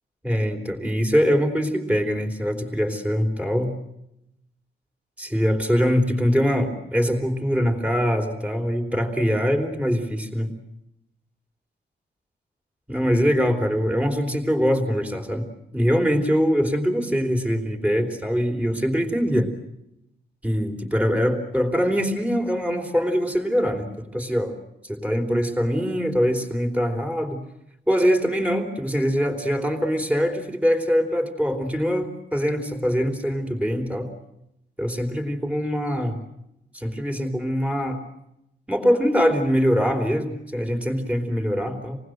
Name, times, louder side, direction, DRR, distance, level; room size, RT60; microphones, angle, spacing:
voice 1, 0.2-3.7 5.2-10.5 12.9-15.5 15.7-19.5 20.4-24.5 24.8-27.4 27.9-34.1 34.8-36.2 36.7-38.0 38.7-42.0, equal, 5° right, 5 dB, 3.3 m, -23 dB
27.5 x 19.5 x 7.9 m, 0.83 s
wide cardioid pair, 150°, 18 cm